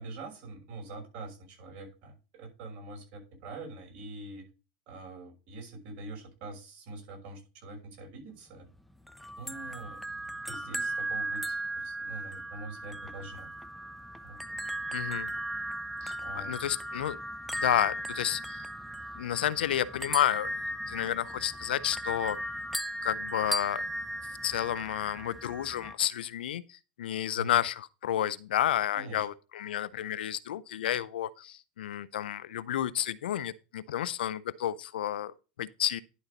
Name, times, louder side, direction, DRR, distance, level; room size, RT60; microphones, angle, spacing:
voice 1, 0.0-4.4 4.9-8.7 9.4-10.0 10.5-13.5 14.2-14.4 16.2-16.5 27.3-27.5 28.9-29.3, right 2 dB, 55° right, 6.0 m, -44 dB
sound 1, 9.1-25.9, right 1 dB, ahead, 0.6 m, -37 dB
voice 2, 14.9-15.3 16.0-17.2 17.5-18.7 19.2-20.5 20.9-22.4 23.0-23.8 24.4-36.0, left 11 dB, 85° left, 0.6 m, -31 dB
11.0 x 4.0 x 5.2 m
supercardioid pair, 115°, 5 cm